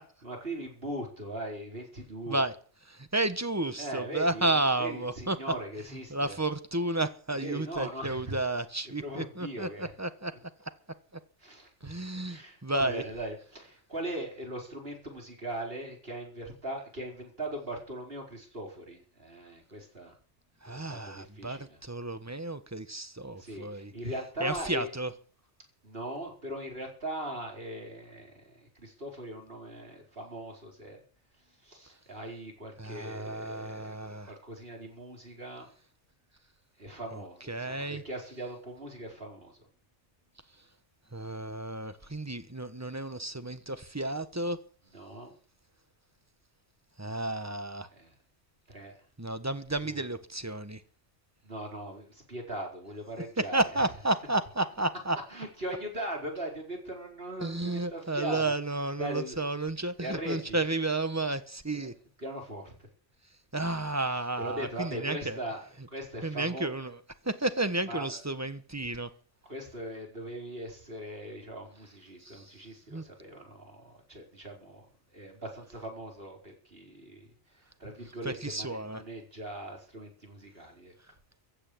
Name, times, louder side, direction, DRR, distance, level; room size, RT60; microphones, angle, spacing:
voice 1, 0.2-2.5 3.8-6.4 7.3-8.3 9.0-9.9 11.4-11.9 12.2-20.2 20.7-21.8 23.4-24.9 25.8-31.0 31.6-35.7 36.8-39.7 44.9-45.4 47.9-48.1 48.7-49.0 49.8-50.1 51.4-53.6 55.3-58.5 59.0-59.4 60.0-60.6 61.7-61.9 62.2-62.9 64.4-66.7 67.9-68.2 69.5-80.9, right 1 dB, 55° right, 4.8 m, -40 dB
voice 2, 2.9-5.4 6.1-10.3 10.6-10.7 11.8-13.0 20.6-23.9 24.4-25.1 32.8-34.3 37.1-37.2 37.5-38.0 41.1-44.6 47.0-47.9 49.2-50.8 53.4-55.2 57.4-61.9 63.5-65.4 66.2-67.0 67.2-69.1 72.2-72.5 72.9-73.0 78.2-79.0, right 2 dB, 15° right, 1.2 m, -32 dB
15.5 x 8.5 x 8.5 m
omnidirectional pair, 1.2 m